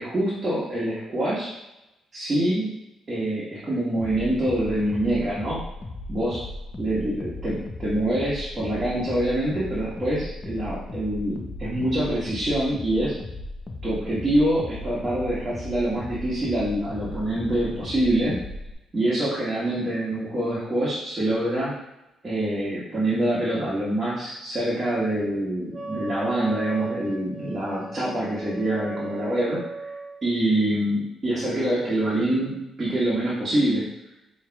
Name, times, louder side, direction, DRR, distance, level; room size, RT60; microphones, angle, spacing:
voice 1, 0.0-1.5 2.1-2.7 3.1-5.6 6.1-6.4 6.8-13.1 13.8-18.4 18.9-21.7 22.2-29.6 29.8-29.9 30.2-33.9, right 1 dB, 30° right, -9 dB, 1.4 m, -25 dB
sound 1, 4.0-18.7, left 2 dB, 25° left, 0.6 m, -37 dB
Wind instrument woodwind instrument, 25.7-30.2, right 3 dB, 60° right, 0.9 m, -36 dB
5.4 x 3.1 x 2.3 m, 0.93 s
cardioid pair, 90°, 0 cm